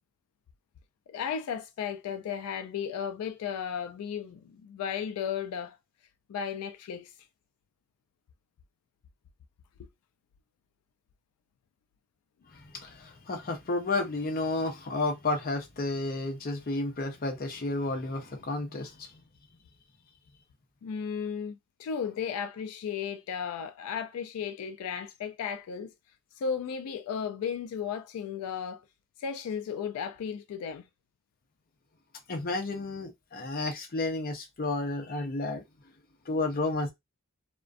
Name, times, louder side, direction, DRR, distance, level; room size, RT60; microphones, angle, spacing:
voice 1, 1.1-5.8 6.3-7.1 9.8-9.9 20.8-25.9 26.4-28.9 29.2-30.8, left 7 dB, 85° left, 0.3 m, -35 dB
voice 2, 12.5-19.1 32.3-35.6 36.3-36.9, left 2 dB, 45° left, 0.6 m, -31 dB
2.4 x 2.1 x 2.4 m
head